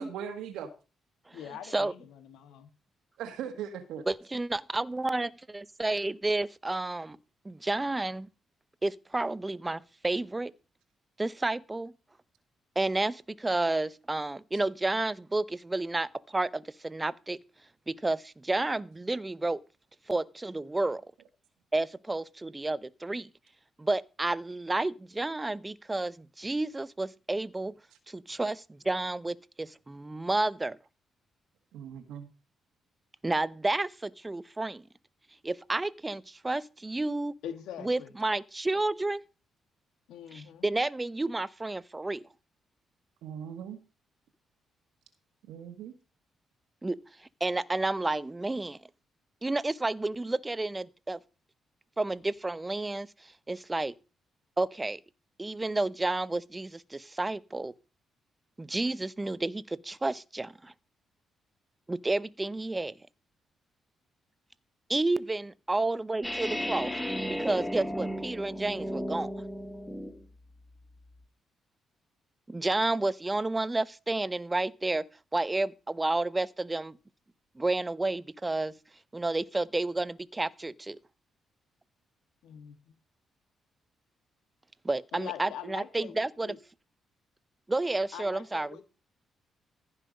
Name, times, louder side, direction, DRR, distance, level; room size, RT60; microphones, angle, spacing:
voice 1, 0.0-0.7 3.2-4.0 31.7-32.3 43.2-43.8 45.5-45.9, right 8 dB, 85° right, 1.6 m, -39 dB
voice 2, 1.3-2.7 37.4-38.1 40.1-40.7 82.4-82.9 85.1-86.6 88.1-88.9, left 10 dB, 85° left, 1.4 m, -43 dB
voice 3, 4.1-7.2 7.4-8.3 8.8-10.5 11.2-11.9 12.8-17.4 17.9-19.6 20.1-21.0 21.7-23.3 23.8-27.7 28.1-30.8 33.2-34.8 35.4-37.3 37.8-39.2 40.3-42.2 46.8-47.0 47.4-48.8 49.4-51.2 52.0-53.9 54.6-55.0 55.4-57.7 58.6-60.7 61.9-62.9 64.9-66.9 67.3-69.3 72.5-77.0 77.6-78.8 79.1-81.0 84.8-86.5 87.7-88.8, right 2 dB, 20° right, 0.8 m, -31 dB
sound 1, 66.2-70.2, equal, 10° left, 2.0 m, -34 dB
15.0 x 5.7 x 5.2 m
supercardioid pair, 60°, 0 cm